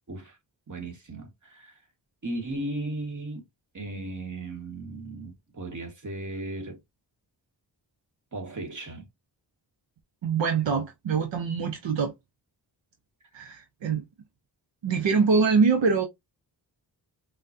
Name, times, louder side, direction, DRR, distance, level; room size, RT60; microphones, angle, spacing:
voice 1, 0.7-1.8 2.2-3.4 3.7-6.8 8.3-9.1, right 2 dB, 40° right, 1.6 m, -36 dB
voice 2, 10.2-12.1 13.3-14.0 14.8-16.1, right 5 dB, 80° right, 0.7 m, -24 dB
5.6 x 2.3 x 2.6 m
cardioid pair, 55°, 44 cm